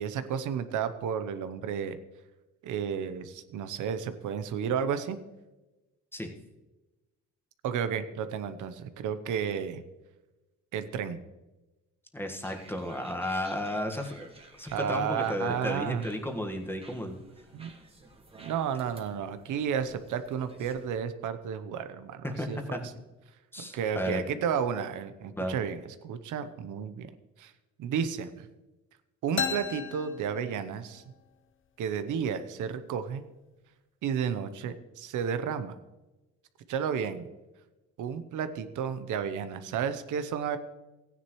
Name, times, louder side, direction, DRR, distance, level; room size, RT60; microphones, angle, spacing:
voice 1, 0.0-2.0 2.6-5.2 7.6-9.8 10.7-11.2 14.7-16.0 17.5-17.7 18.4-22.8 23.6-27.1 27.4-27.5 27.8-28.5 29.2-31.0 31.8-33.2 34.0-35.8 36.7-37.3 38.0-40.6, right 7 dB, 80° right, 11 dB, 0.9 m, -32 dB
voice 2, 12.1-14.3 14.6-17.2 22.2-22.8 23.5-24.3 25.3-25.6, left 1 dB, 5° left, 3 dB, 1.6 m, -33 dB
sound 1, 12.4-21.0, right 2 dB, 20° right, 1.8 m, -54 dB
sound 2, 29.4-31.1, left 6 dB, 40° left, 0.9 m, -34 dB
15.0 x 9.9 x 3.2 m, 1.1 s
cardioid pair, 90°, 30 cm